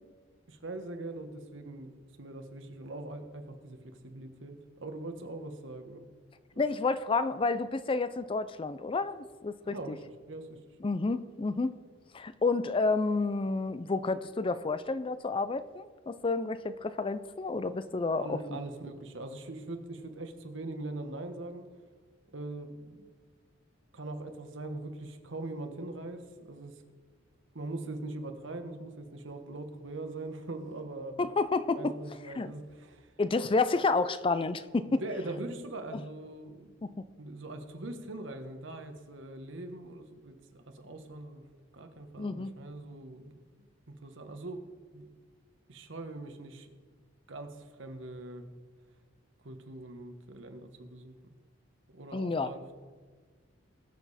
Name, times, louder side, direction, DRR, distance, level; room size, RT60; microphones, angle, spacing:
voice 1, 0.5-1.9 2.2-3.8 4.0-6.0 9.6-10.0 10.3-10.6 18.1-21.7 22.3-23.1 23.9-26.7 27.5-31.2 31.7-33.1 34.8-36.7 37.1-41.4 41.7-43.4 43.9-44.6 44.9-45.1 45.7-46.7 47.3-48.5 49.4-51.2 51.9-52.6, right 2 dB, 70° right, 6 dB, 1.3 m, -42 dB
voice 2, 6.6-10.0 10.8-11.8 12.1-18.4 31.2-32.0 32.3-32.5 33.2-35.0 35.9-36.0 36.8-37.0 42.2-42.5 52.1-52.5, left 3 dB, 25° left, 13 dB, 0.4 m, -30 dB
20.5 x 6.9 x 4.2 m, 1.5 s
head